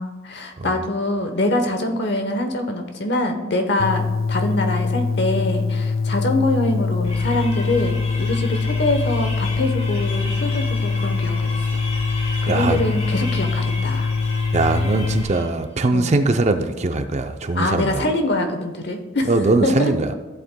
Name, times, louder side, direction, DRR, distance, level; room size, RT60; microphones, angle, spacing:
voice 1, 0.0-11.8 12.4-14.1 15.9-16.2 17.5-19.3 19.6-19.9, left 1 dB, 55° left, 6 dB, 1.0 m, -24 dB
sound 1, 3.8-15.2, left 4 dB, 90° left, 0.6 m, -23 dB
sound 2, 7.0-15.6, left 2 dB, 35° left, 1.7 m, -33 dB
voice 2, 12.5-12.8 14.5-18.1 19.3-20.1, right 2 dB, 35° right, 7 dB, 0.5 m, -21 dB
14.5 x 7.6 x 2.2 m, 1.2 s
head